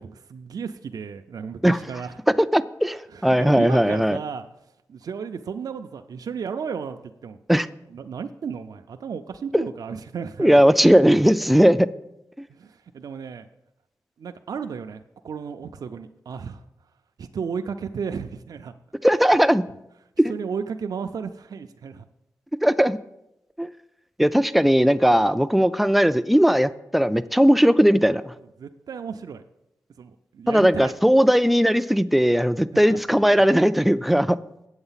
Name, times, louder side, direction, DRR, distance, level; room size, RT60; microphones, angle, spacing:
voice 1, 0.0-2.2 3.1-4.4 4.9-7.4 7.9-10.6 12.5-13.5 14.2-16.6 17.2-18.7 20.3-22.1 28.6-29.4 30.0-30.9 32.7-33.0, right 6 dB, 80° right, 6 dB, 0.4 m, -34 dB
voice 2, 2.5-4.2 7.5-7.7 9.5-9.6 10.4-11.9 19.0-19.6 22.6-23.0 23.6-23.7 24.2-28.3 30.5-34.4, equal, ahead, 12 dB, 0.3 m, -18 dB
8.0 x 7.9 x 5.7 m, 0.86 s
wide cardioid pair, 110°, 6 cm